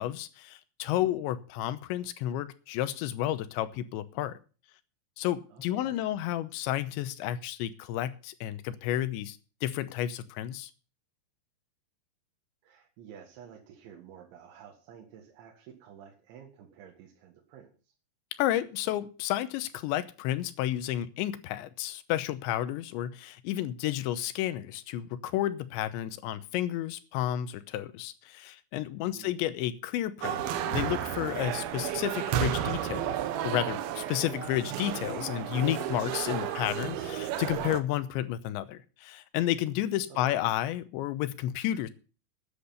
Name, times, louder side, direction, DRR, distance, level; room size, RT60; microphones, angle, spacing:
voice 1, 0.0-4.3 5.2-10.7 18.4-33.2 33.4-41.9, left 13 dB, 85° left, 12 dB, 3.2 m, -31 dB
voice 2, 5.5-6.2 12.6-17.9 29.1-29.4 40.1-40.4, right 8 dB, 85° right, 1 dB, 4.0 m, -51 dB
sound 1, 30.2-37.8, right 10 dB, 70° right, 2.5 m, -32 dB
13.0 x 10.0 x 5.6 m, 0.37 s
omnidirectional pair, 5.1 m